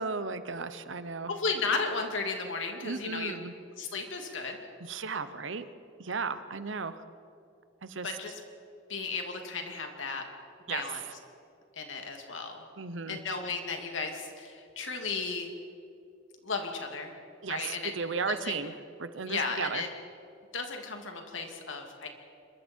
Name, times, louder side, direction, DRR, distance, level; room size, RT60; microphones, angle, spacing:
voice 1, 0.0-1.3 2.7-3.5 4.8-5.6 6.0-7.0 7.8-8.2 10.7-11.1 12.8-13.2 17.4-19.8, right 4 dB, 70° right, 12 dB, 1.0 m, -35 dB
voice 2, 1.3-3.4 3.8-4.6 8.0-8.3 8.9-10.2 10.7-11.0 11.8-12.6 13.1-15.5 16.4-17.1 17.5-17.9 18.3-18.5 19.3-19.9 20.5-22.1, left 4 dB, 75° left, 3 dB, 2.6 m, -34 dB
25.5 x 22.5 x 4.6 m, 2.6 s
head